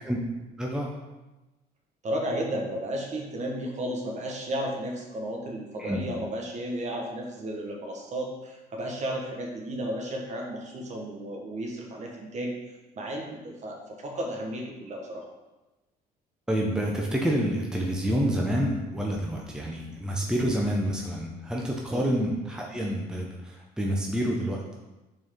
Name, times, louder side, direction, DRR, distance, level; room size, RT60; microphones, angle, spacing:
voice 1, 0.6-0.9 5.8-6.0 16.5-24.6, equal, 5° right, -1 dB, 0.8 m, -28 dB
voice 2, 2.0-12.5 12.9-15.2 21.9-22.1, right 1 dB, 45° right, 0 dB, 1.3 m, -33 dB
6.2 x 4.5 x 3.7 m, 1.1 s
cardioid pair, 110°, 17 cm